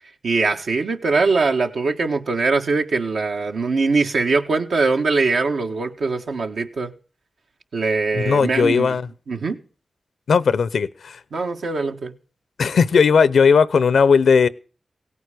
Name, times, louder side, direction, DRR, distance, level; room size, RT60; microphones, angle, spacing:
voice 1, 0.2-6.9 7.7-8.9 9.3-9.6 11.3-12.1, right 3 dB, 85° right, 1.7 m, -22 dB
voice 2, 8.1-9.1 10.3-11.2 12.6-14.5, left 5 dB, 85° left, 0.7 m, -17 dB
17.5 x 9.3 x 6.7 m
cardioid pair, 55°, 0 cm